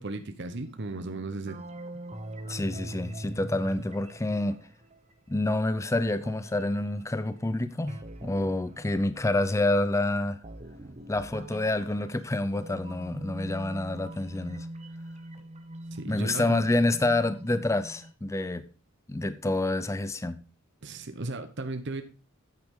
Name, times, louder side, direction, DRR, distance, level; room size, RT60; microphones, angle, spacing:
voice 1, 0.0-1.6 15.9-16.6 20.8-22.0, right 2 dB, 60° right, 1.0 m, -35 dB
sound 1, 0.6-5.4 6.1-9.8 10.4-18.1, right 1 dB, 35° right, 1.0 m, -43 dB
voice 2, 2.5-4.6 5.3-10.4 11.1-14.7 16.1-18.6 19.1-20.4, left 2 dB, 15° left, 0.5 m, -28 dB
9.1 x 8.5 x 3.7 m
head